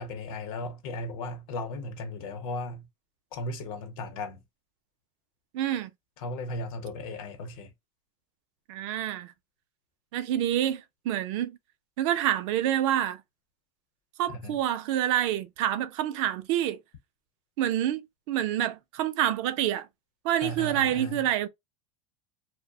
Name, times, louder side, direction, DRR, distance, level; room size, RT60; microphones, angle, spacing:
voice 1, 0.0-2.9 3.3-4.4 6.2-7.7 14.3-14.6 20.4-21.2, left 2 dB, 70° left, 0.8 m, -36 dB
voice 2, 5.5-5.9 8.7-9.3 10.1-11.6 12.0-13.2 14.2-16.8 17.6-18.0 18.3-19.9 20.2-21.5, right 11 dB, 65° right, 0.4 m, -27 dB
2.3 x 2.1 x 2.6 m
supercardioid pair, 145°, 18 cm